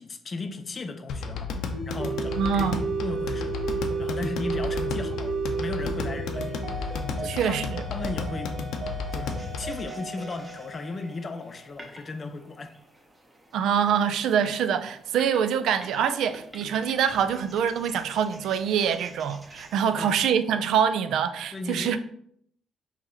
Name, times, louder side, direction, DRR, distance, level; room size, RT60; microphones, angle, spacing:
voice 1, 0.0-2.7 3.0-8.5 9.1-12.7 19.9-20.3 21.5-22.0, left 3 dB, 35° left, 0.5 m, -37 dB
sound 1, 1.1-9.8, left 4 dB, 80° left, 0.5 m, -33 dB
sound 2, 1.7-12.1, right 4 dB, 55° right, 1.1 m, -33 dB
voice 2, 2.4-2.9 7.2-7.8 13.5-22.0, right 8 dB, 80° right, 0.3 m, -25 dB
sound 3, 9.2-20.2, right 1 dB, 20° right, 0.9 m, -49 dB
3.8 x 2.9 x 4.2 m
cardioid pair, 90°, 0 cm